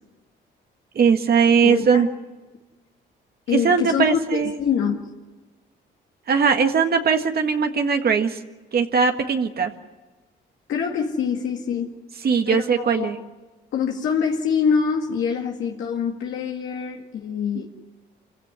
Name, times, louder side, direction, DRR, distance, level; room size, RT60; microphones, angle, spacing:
voice 1, 0.9-2.1 3.5-4.6 6.3-8.4 8.7-9.7 12.2-13.2, right 6 dB, 50° right, 5 dB, 1.8 m, -20 dB
voice 2, 1.6-2.1 3.5-5.1 10.7-12.0 12.5-13.1 13.7-17.7, left 6 dB, 75° left, 0 dB, 2.1 m, -25 dB
26.0 x 16.0 x 9.6 m, 1.2 s
cardioid pair, 90°, 20 cm